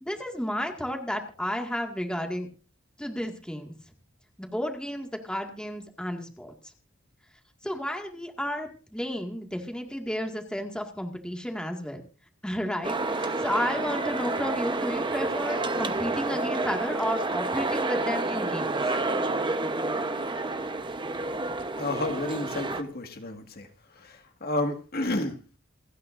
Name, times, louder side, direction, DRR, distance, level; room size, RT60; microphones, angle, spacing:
voice 1, 0.0-2.5 3.0-3.7 4.4-6.5 7.6-12.0 12.4-18.8, equal, 5° left, 3 dB, 2.0 m, -32 dB
sound 1, 12.8-22.8, right 2 dB, 25° right, 1.0 m, -29 dB
voice 2, 21.8-23.7 24.0-25.6, left 2 dB, 50° left, 4 dB, 1.9 m, -31 dB
28.5 x 9.5 x 2.6 m, 0.34 s
head